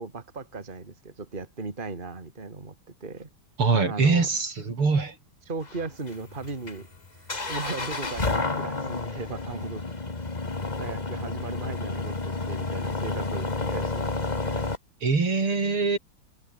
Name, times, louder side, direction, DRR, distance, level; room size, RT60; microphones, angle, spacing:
voice 1, 0.0-2.7 3.0-3.3 3.8-4.3 5.5-6.9 7.1-9.8 10.8-14.6, right 3 dB, 25° right, 2.6 m, -37 dB
voice 2, 3.6-5.2 15.0-16.0, right 4 dB, 80° right, 5.3 m, -23 dB
sound 1, 5.6-14.8, left 3 dB, 20° left, 1.8 m, -31 dB
omnidirectional pair, 2.4 m